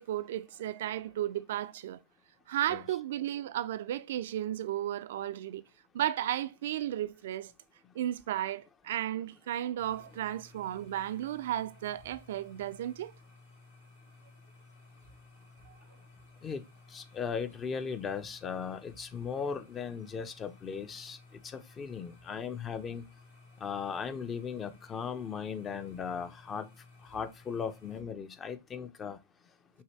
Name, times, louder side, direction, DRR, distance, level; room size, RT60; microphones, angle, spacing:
voice 1, 0.0-2.0 2.5-5.6 5.9-7.5 8.0-13.1, right 12 dB, 55° right, 0.3 m, -34 dB
sound 1, 9.8-28.0, left 3 dB, 70° left, 2.2 m, -57 dB
voice 2, 16.9-21.2 21.5-23.0 23.6-26.7 27.1-29.2, left 6 dB, 25° left, 0.6 m, -37 dB
5.6 x 2.8 x 3.1 m
figure-of-eight pair, 90°, 0 cm